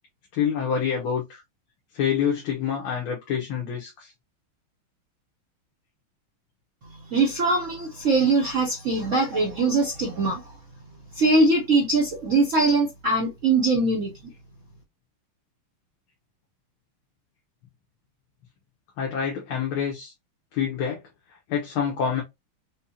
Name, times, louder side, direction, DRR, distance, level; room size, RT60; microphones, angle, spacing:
voice 1, 0.3-1.4 1.9-4.1 19.0-20.1 20.5-21.0 21.5-22.2, left 7 dB, 80° left, 1.8 m, -27 dB
voice 2, 6.9-10.5 11.1-14.1, right 3 dB, 55° right, 0.9 m, -22 dB
5.3 x 2.2 x 2.8 m
omnidirectional pair, 2.3 m